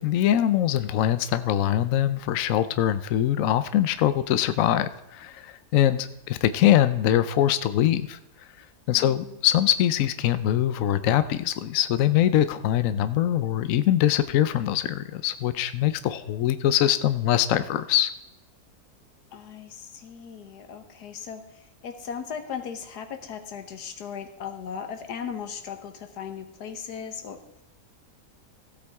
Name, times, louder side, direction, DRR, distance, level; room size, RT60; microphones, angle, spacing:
voice 1, 0.0-8.2 8.9-18.1, left 12 dB, 65° left, 12 dB, 0.9 m, -23 dB
voice 2, 8.9-9.4 19.3-27.4, left 7 dB, 80° left, 8 dB, 1.6 m, -37 dB
15.5 x 8.4 x 3.5 m, 0.88 s
omnidirectional pair, 1.7 m